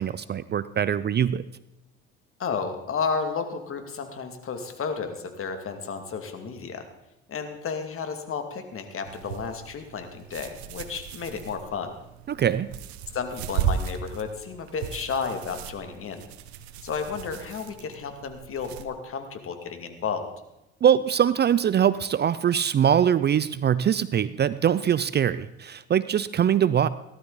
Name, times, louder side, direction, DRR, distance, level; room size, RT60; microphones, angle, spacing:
voice 1, 0.0-1.4 12.3-12.7 20.8-26.9, right 9 dB, 35° right, 16 dB, 0.5 m, -22 dB
voice 2, 2.4-6.8 7.3-12.0 13.1-16.2 16.8-20.3, left 5 dB, 45° left, 6 dB, 2.5 m, -32 dB
sound 1, 9.1-18.9, right 8 dB, 85° right, 1.0 m, -36 dB
17.5 x 12.0 x 4.1 m, 0.92 s
supercardioid pair, 80°, 31 cm